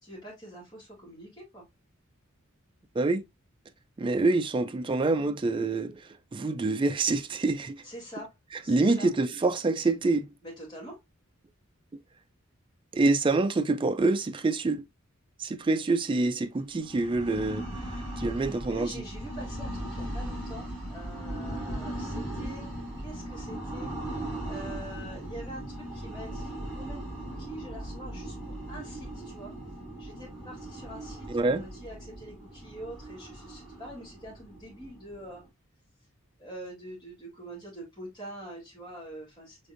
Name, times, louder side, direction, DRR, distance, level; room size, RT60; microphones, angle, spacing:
voice 1, 0.0-1.7 7.8-8.3 8.6-9.1 10.4-11.0 18.4-23.9 24.4-29.5 30.0-35.4 36.4-39.6, right 1 dB, 20° left, 2.2 m, -44 dB
voice 2, 4.0-6.0 6.3-7.8 8.7-10.3 12.9-14.8 15.4-17.6 18.2-18.9 31.3-31.6, right 3 dB, 25° right, 0.3 m, -26 dB
sound 1, 16.7-35.5, right 1 dB, 5° right, 3.1 m, -38 dB
5.2 x 3.5 x 2.4 m
head